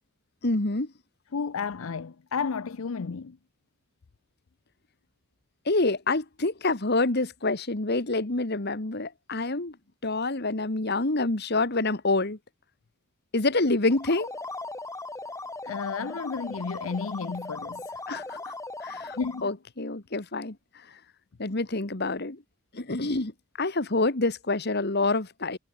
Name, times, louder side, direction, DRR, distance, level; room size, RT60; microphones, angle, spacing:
voice 1, 0.4-0.9 5.6-9.8 10.0-12.4 13.3-14.3 18.1-18.5 18.8-19.2 19.4-20.6 21.4-22.4 22.7-23.3 23.6-25.6, left 2 dB, 50° left, 1.7 m, -27 dB
voice 2, 1.3-3.4 15.6-17.8 19.2-19.5, left 5 dB, 75° left, 0.6 m, -32 dB
sound 1, 13.8-19.5, left 2 dB, 15° left, 4.7 m, -38 dB
head